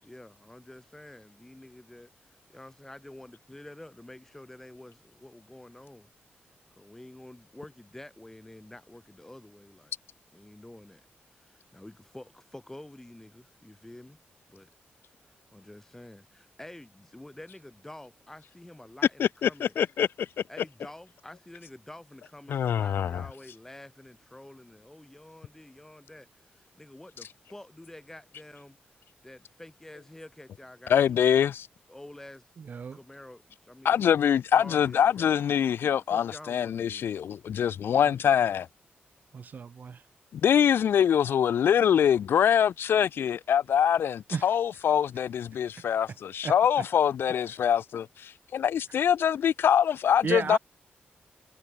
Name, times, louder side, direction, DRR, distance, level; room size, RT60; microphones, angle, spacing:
voice 1, 0.0-6.1 6.8-9.9 10.3-11.0 11.4-14.2 14.5-14.7 15.2-19.7 20.5-28.8 29.2-31.0 31.9-32.5 32.9-34.0 34.6-35.3 36.1-37.1, left 1 dB, 10° left, 3.3 m, -48 dB
voice 2, 19.2-20.3 22.5-23.2 30.9-31.7 33.8-38.7 40.3-50.6, left 9 dB, 85° left, 0.4 m, -24 dB
voice 3, 32.6-33.0 39.3-40.0 44.3-44.5 46.4-46.6 50.2-50.6, right 6 dB, 55° right, 2.1 m, -33 dB
wide cardioid pair, 130°, 4 cm